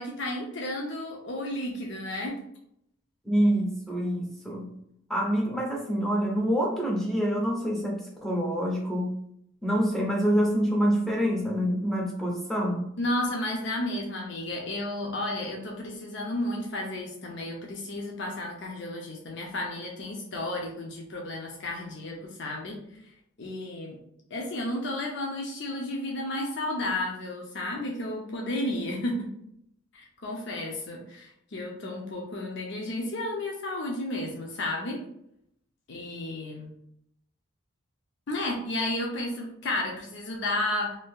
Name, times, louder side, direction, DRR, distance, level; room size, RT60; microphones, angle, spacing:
voice 1, 0.0-2.4 13.0-23.0 23.4-24.0 24.3-29.3 29.9-35.0 35.9-36.7 38.3-41.0, left 1 dB, 55° left, 0 dB, 0.5 m, -32 dB
voice 2, 3.3-4.7 5.1-9.1 9.6-12.9, equal, ahead, -2 dB, 0.6 m, -26 dB
2.6 x 2.3 x 3.6 m, 0.73 s
head